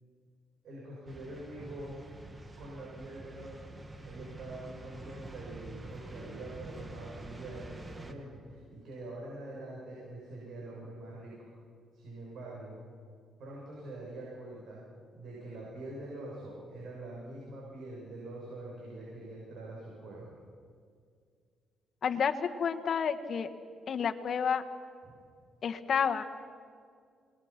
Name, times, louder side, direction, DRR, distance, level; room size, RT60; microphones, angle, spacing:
voice 1, 0.6-2.0 2.6-3.7 4.0-11.5 11.9-12.8 13.4-14.8 15.1-20.4 25.0-25.2, right 1 dB, 65° right, -4 dB, 7.4 m, -44 dB
sound 1, 1.1-8.1, right 2 dB, 25° right, 1.9 m, -47 dB
voice 2, 22.0-23.5 23.9-24.6 25.6-26.2, left 7 dB, 55° left, 6 dB, 1.5 m, -30 dB
27.5 x 20.5 x 6.0 m, 2.2 s
cardioid pair, 90°, 0 cm